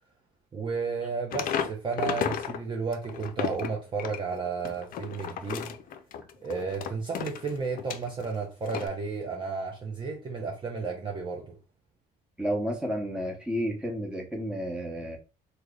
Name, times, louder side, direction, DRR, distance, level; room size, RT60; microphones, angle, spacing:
voice 1, 0.5-5.7 6.4-11.6, right 5 dB, 30° right, 0.6 m, -33 dB
sound 1, 1.3-2.6 2.9-8.3 8.7-8.9, left 8 dB, 55° left, 0.4 m, -33 dB
voice 2, 12.4-15.2, equal, 5° right, 1.0 m, -31 dB
3.1 x 2.1 x 3.7 m
cardioid pair, 110°, 17 cm